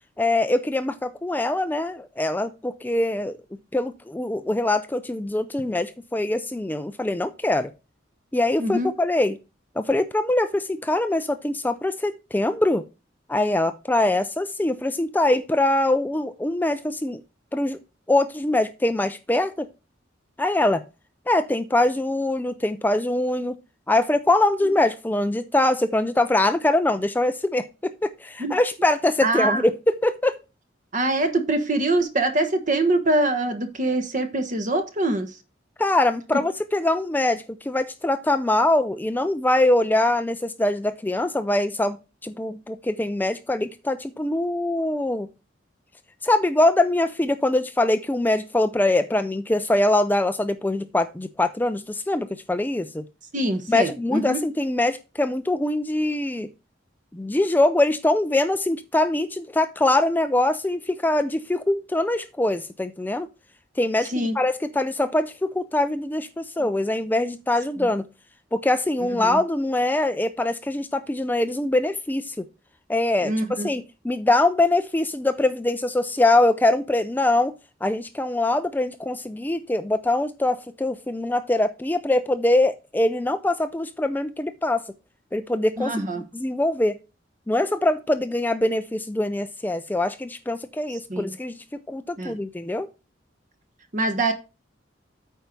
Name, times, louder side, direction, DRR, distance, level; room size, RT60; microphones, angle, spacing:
voice 1, 0.2-3.4 3.7-7.7 8.3-9.4 9.8-12.8 13.3-17.2 17.5-17.8 18.1-19.7 20.4-20.8 21.3-23.6 23.9-30.4 35.8-42.0 42.2-45.3 46.2-53.0 53.7-56.5 57.1-63.3 63.8-68.0 68.5-72.4 72.9-77.5 77.8-84.8 85.3-86.1 86.3-87.0 87.5-92.9, left 2 dB, 10° left, 0.4 m, -23 dB
voice 2, 8.6-8.9 28.4-28.5 29.2-29.6 30.9-35.3 53.3-54.4 64.1-64.3 69.2-69.4 73.2-73.7 85.8-86.2 91.1-91.3 92.2-92.3 93.9-94.3, right 2 dB, 45° right, 1.2 m, -24 dB
8.9 x 4.6 x 5.2 m
head